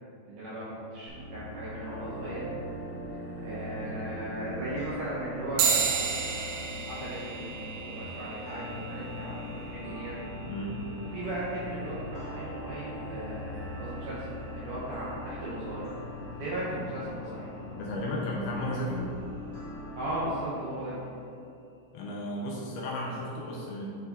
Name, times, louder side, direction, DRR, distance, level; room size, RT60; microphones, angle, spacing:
voice 1, 0.3-2.4 3.4-7.4 7.7-10.3 11.1-14.3 14.5-15.9 16.4-17.5 20.0-21.0, right 1 dB, 70° right, -8 dB, 2.0 m, -37 dB
sound 1, 1.1-20.3, left 1 dB, 55° right, 1.7 m, -43 dB
sound 2, 1.8-21.2, left 1 dB, 60° left, 1.2 m, -43 dB
sound 3, 5.6-15.4, right 7 dB, 90° right, 2.8 m, -35 dB
voice 2, 10.5-10.8 17.7-19.1 21.9-24.0, left 1 dB, 75° left, -3 dB, 2.5 m, -34 dB
8.2 x 4.3 x 3.9 m, 2.6 s
omnidirectional pair, 4.9 m